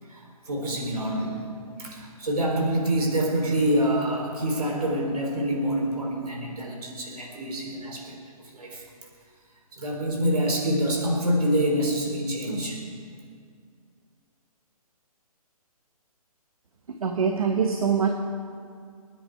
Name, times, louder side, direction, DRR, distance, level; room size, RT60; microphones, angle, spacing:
voice 1, 0.0-8.8 9.7-12.8, equal, 90° right, 0 dB, 4.0 m, -26 dB
voice 2, 17.0-18.1, right 6 dB, 70° right, 4 dB, 1.4 m, -23 dB
29.5 x 10.0 x 4.7 m, 2.2 s
hypercardioid pair, 160°, 19 cm